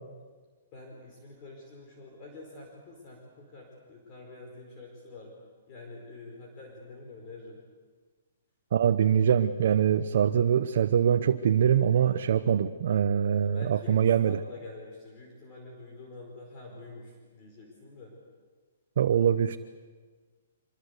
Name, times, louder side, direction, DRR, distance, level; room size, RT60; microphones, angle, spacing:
voice 1, 0.7-5.3 5.7-7.6 13.4-18.1, left 2 dB, 30° left, 0 dB, 4.9 m, -47 dB
voice 2, 8.7-14.3 19.0-19.6, right 8 dB, 60° right, 8 dB, 0.8 m, -23 dB
25.5 x 21.5 x 8.2 m, 1.4 s
hypercardioid pair, 160°, 0 cm